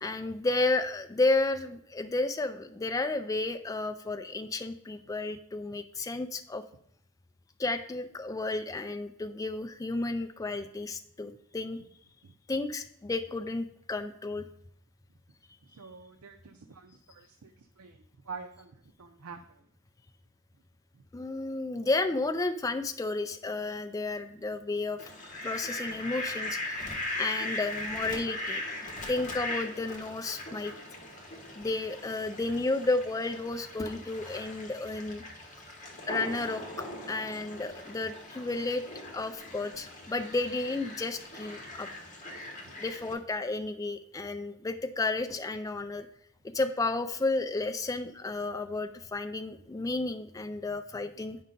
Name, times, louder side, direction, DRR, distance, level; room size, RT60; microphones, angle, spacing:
voice 1, 0.0-6.6 7.6-11.8 12.5-14.5 21.1-30.7 31.6-35.2 36.1-38.8 39.1-41.9 42.8-46.1 46.5-51.4, left 2 dB, 15° left, 7 dB, 0.4 m, -32 dB
voice 2, 15.6-19.7 20.9-21.2 41.6-41.7 42.6-42.7, right 5 dB, 85° right, 5 dB, 0.6 m, -48 dB
Fowl, 25.0-43.1, left 2 dB, 35° left, 1.4 m, -40 dB
9.3 x 5.5 x 3.8 m, 0.74 s
head